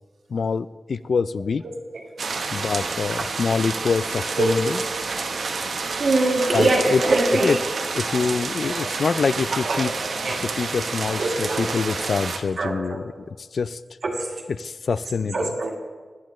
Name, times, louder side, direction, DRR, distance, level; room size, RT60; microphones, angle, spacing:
voice 1, 0.3-1.6 2.5-4.8 6.5-7.0 7.4-7.6 7.9-9.9 10.6-13.8 14.6-15.5, left 5 dB, 65° left, 16 dB, 0.3 m, -25 dB
sound 1, 2.2-12.4, right 4 dB, 85° right, 1.0 m, -29 dB
voice 2, 6.0-7.5 8.6-8.9 9.5-10.4 11.2-11.7 12.6-13.0 14.0-14.3 15.3-15.8, right 2 dB, 70° right, 1 dB, 1.8 m, -23 dB
18.0 x 11.5 x 3.1 m, 1.4 s
wide cardioid pair, 135°, 0 cm